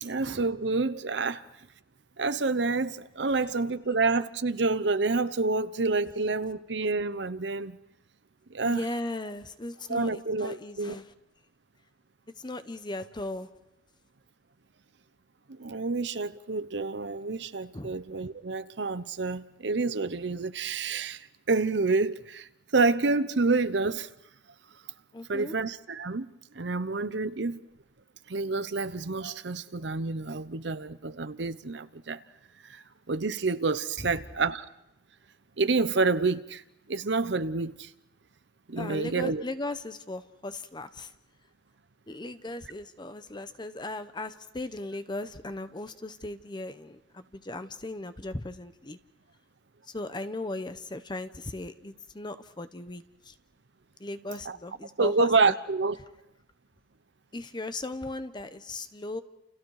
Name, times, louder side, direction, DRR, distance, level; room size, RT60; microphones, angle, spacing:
voice 1, 0.0-1.4 2.2-7.8 8.5-8.8 9.9-11.0 15.5-24.1 25.3-27.6 28.3-32.2 32.6-32.8 33.1-34.7 35.6-36.6 36.9-37.9 38.7-39.4 54.5-54.6 55.0-56.0, right 3 dB, 70° right, 0.8 m, -28 dB
voice 2, 8.6-11.0 12.4-13.5 17.7-17.9 25.1-25.6 38.8-41.1 42.1-49.0 49.9-53.3 54.0-55.5 57.3-59.2, left 2 dB, 25° left, 0.9 m, -37 dB
29.5 x 29.0 x 4.9 m
head